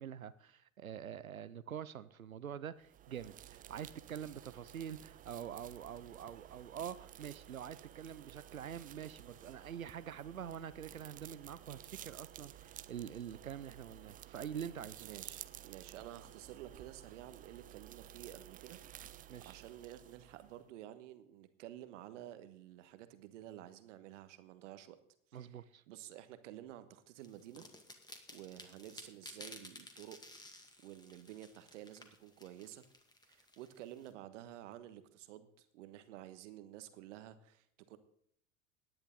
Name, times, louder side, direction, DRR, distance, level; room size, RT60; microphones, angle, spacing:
voice 1, 0.0-15.1 19.3-19.6 25.3-25.8, right 9 dB, 90° right, 0.6 m, -46 dB
sound 1, 2.8-20.6, right 12 dB, 20° right, 0.4 m, -54 dB
voice 2, 15.0-25.0 25.3-27.6 28.3-30.2 30.8-32.8 33.3-38.0, right 12 dB, 65° right, 1.3 m, -52 dB
sound 2, 27.2-34.1, left 2 dB, 10° left, 2.0 m, -55 dB
18.0 x 10.5 x 3.8 m
figure-of-eight pair, 75°, 40 cm